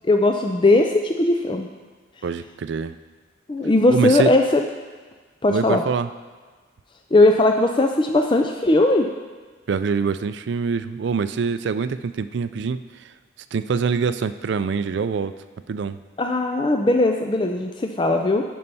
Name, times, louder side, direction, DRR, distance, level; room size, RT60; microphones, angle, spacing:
voice 1, 0.0-1.7 3.5-4.6 5.4-5.8 7.1-9.1 16.2-18.4, left 2 dB, 25° left, 4 dB, 0.4 m, -18 dB
voice 2, 2.2-2.9 3.9-4.3 5.5-6.1 9.7-12.8 13.5-15.3 15.7-16.0, right 5 dB, 60° right, 13 dB, 0.4 m, -24 dB
9.7 x 5.4 x 5.5 m, 1.4 s
head